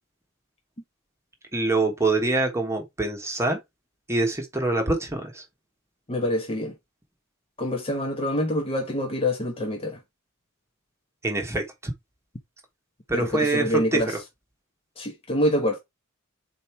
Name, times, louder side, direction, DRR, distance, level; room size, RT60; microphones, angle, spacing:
voice 1, 1.5-3.6 4.1-5.4 11.2-11.9 13.1-14.2, right 2 dB, 15° right, 1.2 m, -25 dB
voice 2, 6.1-6.7 7.6-10.0 13.1-14.1 15.0-15.8, equal, 25° left, 1.0 m, -26 dB
5.2 x 4.2 x 4.4 m
head